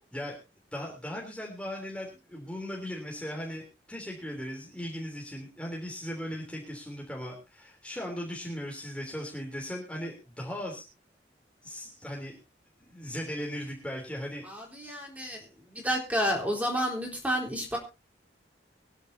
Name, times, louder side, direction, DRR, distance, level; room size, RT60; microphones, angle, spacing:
voice 1, 0.7-10.8 11.6-12.4 12.8-14.5 14.8-15.0, equal, 5° left, -2 dB, 3.3 m, -38 dB
voice 2, 14.5-17.8, equal, 10° right, 0 dB, 4.2 m, -30 dB
24.5 x 10.5 x 2.8 m, 0.28 s
head